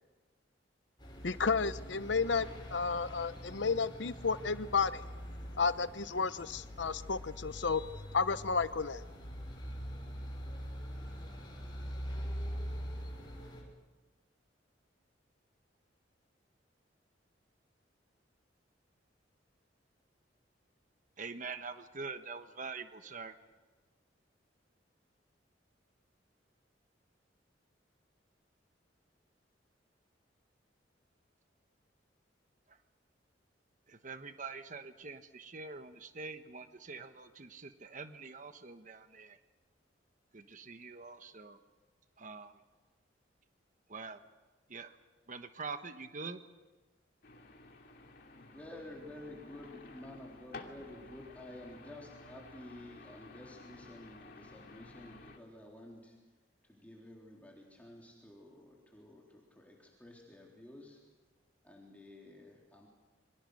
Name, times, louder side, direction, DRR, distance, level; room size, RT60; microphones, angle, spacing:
sound 1, 1.0-13.6, equal, 25° left, 6.3 m, -43 dB
voice 1, 1.2-5.0 5.6-7.8 8.1-9.0, left 5 dB, 75° left, 14 dB, 0.9 m, -32 dB
voice 2, 21.2-23.3 32.7-32.8 33.9-39.4 40.3-41.6 42.2-42.6 43.9-44.2 44.7-45.0 45.3-46.4, right 4 dB, 45° right, 9 dB, 1.2 m, -45 dB
sound 2, 47.2-55.4, left 3 dB, 60° left, 2.6 m, -53 dB
voice 3, 48.3-56.1 56.7-61.0 61.6-62.9, left 1 dB, 10° left, -3 dB, 3.7 m, -51 dB
28.0 x 24.5 x 6.5 m, 1.2 s
head